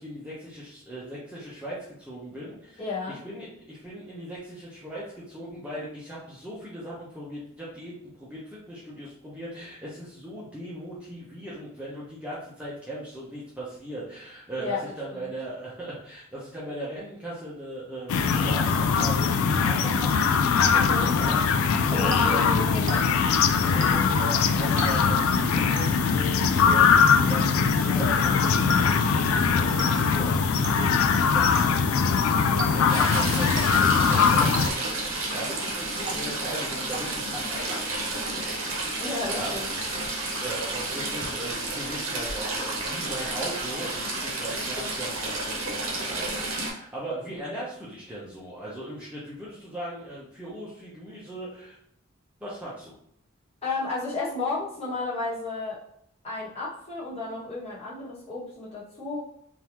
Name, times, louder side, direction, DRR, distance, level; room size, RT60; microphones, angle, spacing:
voice 1, 0.0-2.8 3.2-20.4 21.1-21.4 21.9-22.5 23.6-30.9 31.3-39.5 40.4-51.8 52.4-52.9, right 1 dB, 5° right, -8 dB, 0.9 m, -38 dB
voice 2, 2.8-3.2 14.6-14.8 15.1-15.3 20.7-21.1 21.9-23.1 38.9-39.7 53.6-55.8 56.2-59.2, left 3 dB, 30° left, -8 dB, 1.4 m, -32 dB
sound 1, 18.1-34.7, left 5 dB, 85° left, 0.3 m, -21 dB
sound 2, 22.1-23.4 23.8-24.2 24.8-25.3 25.8-26.2 27.1-27.5 28.7-29.2 29.8-30.2 30.6-31.0 31.5-31.9 32.6-33.1 33.6-34.0 34.5-35.1 36.1-36.6 36.9-37.4, right 3 dB, 40° right, 0.6 m, -39 dB
Stream / Trickle dribble, 32.9-46.7, right 2 dB, 70° right, 1.0 m, -31 dB
3.7 x 2.8 x 3.0 m, 0.70 s
head